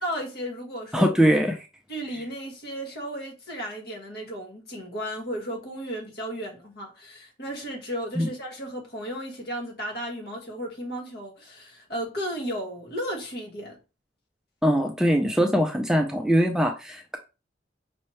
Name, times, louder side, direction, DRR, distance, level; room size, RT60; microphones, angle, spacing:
voice 1, 0.0-1.1 1.9-13.8, equal, 55° left, 1.5 m, -34 dB
voice 2, 0.9-1.7 8.2-8.3 14.6-17.2, equal, 5° right, 0.3 m, -22 dB
5.4 x 2.9 x 3.2 m
head